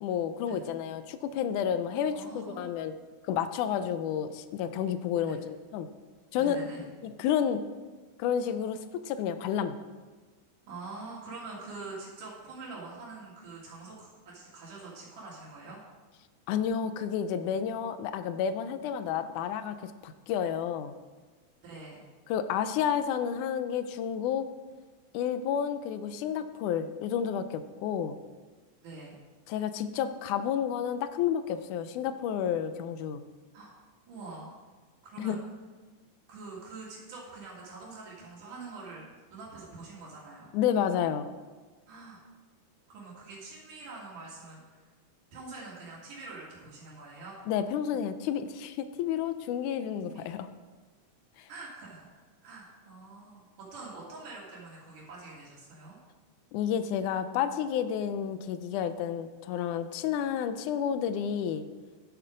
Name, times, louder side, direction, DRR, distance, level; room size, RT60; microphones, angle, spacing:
voice 1, 0.0-2.9 3.3-5.9 6.3-6.6 7.0-7.6 8.2-9.8 16.5-20.9 22.3-24.5 25.1-28.2 29.5-33.2 35.2-35.4 40.5-41.3 47.5-50.5 51.4-51.5 56.5-61.7, left 8 dB, 80° left, 11 dB, 2.1 m, -30 dB
voice 2, 2.1-2.7 5.2-5.4 6.3-6.8 10.7-15.8 21.6-22.0 28.8-29.2 33.5-33.7 34.1-34.5 35.0-35.4 36.3-40.5 41.9-42.2 42.9-44.9 45.3-47.4 50.1-50.3 51.5-56.0, right 3 dB, 75° right, -6 dB, 3.6 m, -45 dB
11.0 x 7.8 x 5.0 m, 1.4 s
omnidirectional pair, 3.6 m